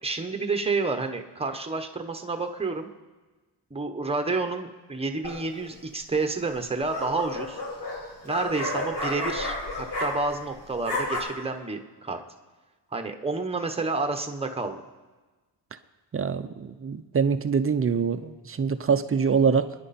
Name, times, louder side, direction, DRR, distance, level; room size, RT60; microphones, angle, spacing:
voice 1, 0.0-2.9 3.7-7.6 8.2-12.2 12.9-14.8, right 3 dB, 15° right, 6 dB, 1.1 m, -29 dB
sound 1, 5.2-5.7 6.6-10.5 10.7-11.2, left 2 dB, 75° left, 3.9 m, -32 dB
voice 2, 16.1-19.7, right 6 dB, 35° right, 10 dB, 0.6 m, -24 dB
27.5 x 10.5 x 4.3 m, 1.3 s
wide cardioid pair, 140°, 41 cm